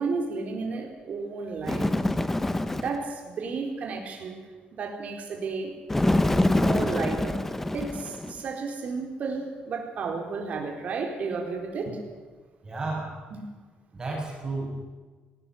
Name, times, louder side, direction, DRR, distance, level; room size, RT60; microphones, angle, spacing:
voice 1, 0.0-1.9 2.8-4.4 4.7-5.7 6.5-7.4 7.7-12.0 13.3-13.4, right 4 dB, 50° right, 2 dB, 4.3 m, -32 dB
Bird, 1.6-3.0 5.9-8.4, left 1 dB, 10° left, 0.9 m, -25 dB
voice 2, 12.6-13.2 13.9-14.9, right 2 dB, 25° right, -1 dB, 6.9 m, -32 dB
19.5 x 18.0 x 8.1 m, 1.3 s
cardioid pair, 150°, 3 cm